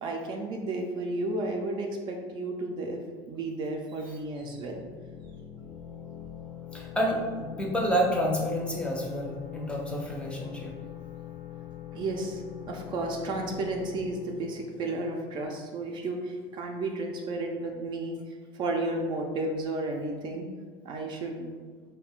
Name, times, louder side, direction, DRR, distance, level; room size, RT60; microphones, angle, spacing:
voice 1, 0.0-3.0 3.3-4.8 11.9-12.4 12.7-18.2 18.5-20.5 20.8-21.6, right 2 dB, 45° right, 1 dB, 0.4 m, -32 dB
sound 1, 4.4-15.9, left 11 dB, 80° left, 0.5 m, -43 dB
voice 2, 6.7-10.7, equal, 10° left, -1 dB, 0.5 m, -29 dB
2.4 x 2.2 x 3.5 m, 1.5 s
supercardioid pair, 115°, 11 cm